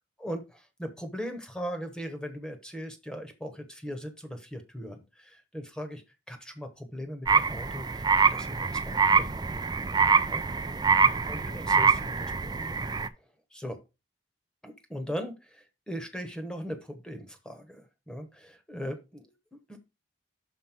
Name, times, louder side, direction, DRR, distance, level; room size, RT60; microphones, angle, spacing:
voice 1, 0.2-9.4 10.2-10.8 11.3-13.8 14.6-19.8, equal, 5° left, 6 dB, 1.0 m, -39 dB
sound 1, 7.3-13.1, right 5 dB, 20° right, 0.3 m, -25 dB
5.9 x 4.3 x 5.9 m, 0.27 s
head